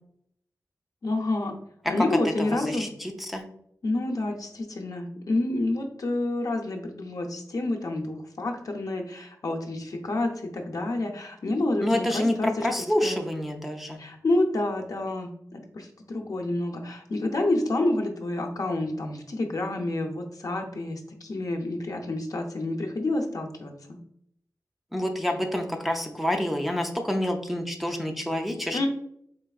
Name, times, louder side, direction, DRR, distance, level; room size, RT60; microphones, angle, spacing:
voice 1, 1.0-1.5 1.9-2.9 3.8-12.7 13.0-13.2 14.0-24.0 28.7-28.9, left 2 dB, 65° left, 2 dB, 0.6 m, -28 dB
voice 2, 2.4-3.4 11.8-14.0 24.9-28.9, left 1 dB, ahead, 2 dB, 0.4 m, -28 dB
4.5 x 3.2 x 2.3 m, 0.70 s
wide cardioid pair, 115°, 7 cm